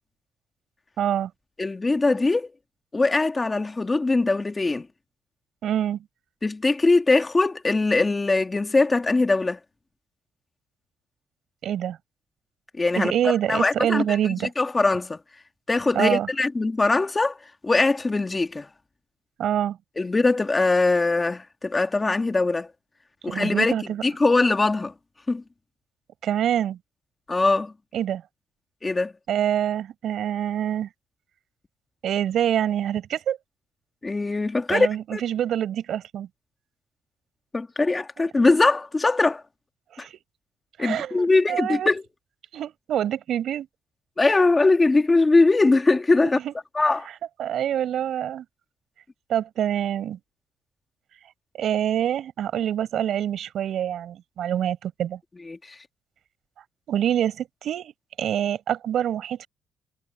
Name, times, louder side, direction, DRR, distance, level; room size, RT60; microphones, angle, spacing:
voice 1, 1.0-1.3 5.6-6.0 11.6-12.0 13.0-14.5 15.9-16.3 19.4-19.8 23.3-24.0 26.2-26.8 27.9-28.2 29.3-30.9 32.0-33.4 34.7-36.3 38.2-38.3 39.9-40.1 40.8-41.9 42.5-43.7 46.4-46.5 47.1-48.4 49.3-50.2 51.6-55.2 56.9-57.9 58.2-59.5, right 10 dB, 65° right, 7.0 m, -26 dB
voice 2, 1.6-2.5 2.9-4.9 6.4-9.6 12.7-14.0 14.6-15.2 15.7-17.4 17.6-18.7 20.0-22.7 23.2-24.9 25.3-25.4 27.3-27.7 28.8-29.1 34.0-35.2 37.5-39.4 40.0-40.1 40.8-42.0 44.2-46.4 46.8-47.1 55.5-55.8, left 3 dB, 20° left, 1.9 m, -21 dB
cardioid pair, 130°, 0 cm